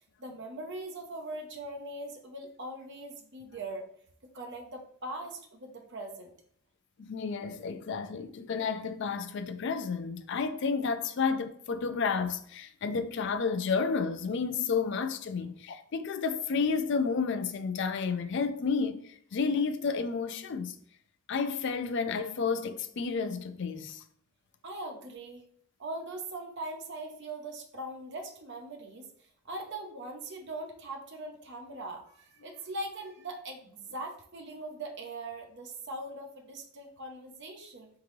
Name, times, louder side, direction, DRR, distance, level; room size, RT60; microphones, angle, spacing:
voice 1, 0.2-3.9 4.3-6.3 24.6-25.4 25.8-29.1 29.5-37.9, right 2 dB, 55° right, 0.7 m, -41 dB
voice 2, 7.0-20.8 21.3-24.0, left 5 dB, 55° left, 0.4 m, -31 dB
3.7 x 3.7 x 3.1 m
head